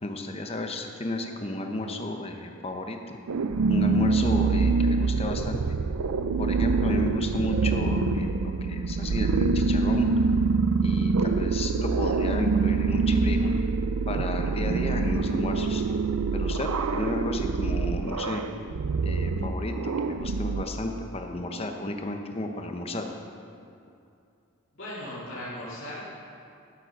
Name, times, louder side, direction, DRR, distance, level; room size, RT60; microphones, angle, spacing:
voice 1, 0.0-3.2 3.7-5.6 6.4-10.1 10.8-13.5 14.1-15.8 16.3-18.4 19.0-19.7 20.0-23.1, left 2 dB, 25° left, 4 dB, 0.8 m, -33 dB
sound 1, 3.3-20.6, right 4 dB, 90° right, 0.5 m, -25 dB
voice 2, 24.7-26.2, left 1 dB, 60° left, -10 dB, 2.7 m, -37 dB
12.5 x 7.7 x 6.0 m, 2.5 s
head